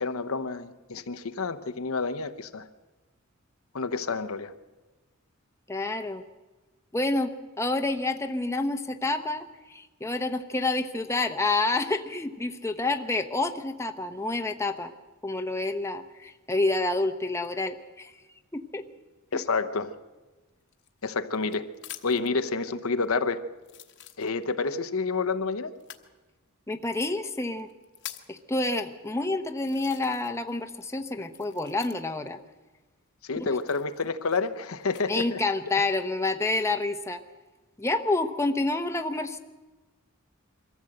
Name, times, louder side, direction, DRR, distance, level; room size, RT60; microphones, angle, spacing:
voice 1, 0.0-2.7 3.7-4.5 19.3-20.0 21.0-21.7 22.0-23.5 24.2-25.7 33.2-35.4, left 4 dB, 75° left, 0.8 m, -29 dB
voice 2, 5.7-6.2 6.9-7.3 7.6-14.9 15.2-18.1 18.5-18.8 26.7-27.7 28.3-32.4 33.4-33.5 35.1-37.2 37.8-39.4, left 2 dB, 15° left, 0.8 m, -28 dB
sound 1, 20.7-22.4 23.0-23.1 23.6-24.7 25.8-26.1 27.0-27.1 27.6-28.4 29.1-29.2 29.6-30.5 30.7-32.3 33.5-35.1 35.7-36.2, left 12 dB, 55° left, 1.2 m, -46 dB
23.0 x 14.5 x 7.8 m
head